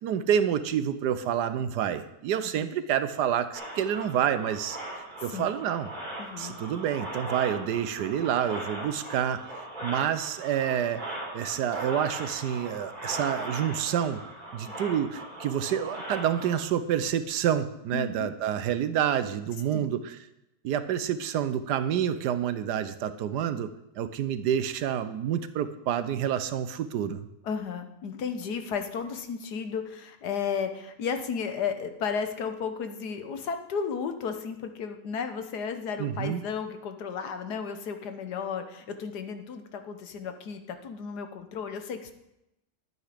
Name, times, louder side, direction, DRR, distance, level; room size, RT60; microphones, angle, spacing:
voice 1, 0.0-5.9 6.4-9.4 9.8-11.0 11.3-14.2 14.5-20.2 20.6-23.7 24.0-27.3 36.0-36.4, right 9 dB, 75° right, 12 dB, 1.3 m, -28 dB
sound 1, 3.5-16.6, right 1 dB, 20° right, 3.2 m, -39 dB
voice 2, 6.2-6.6 17.9-18.3 19.7-19.9 27.4-42.1, left 6 dB, 70° left, 8 dB, 1.5 m, -34 dB
11.0 x 9.1 x 5.0 m, 0.87 s
omnidirectional pair, 1.8 m